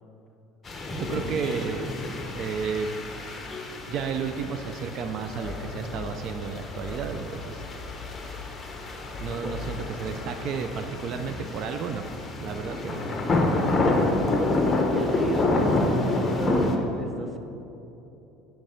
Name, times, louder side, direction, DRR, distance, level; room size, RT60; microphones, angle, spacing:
sound 1, 0.6-16.8, left 2 dB, 20° left, 1.0 m, -28 dB
voice 1, 0.9-1.9 2.4-2.9 3.9-7.6 9.2-12.0 12.4-13.0, right 6 dB, 55° right, 7 dB, 0.4 m, -32 dB
voice 2, 14.3-17.4, right 1 dB, 15° right, 6 dB, 0.7 m, -34 dB
9.1 x 4.6 x 5.6 m, 2.9 s
supercardioid pair, 105°, 0 cm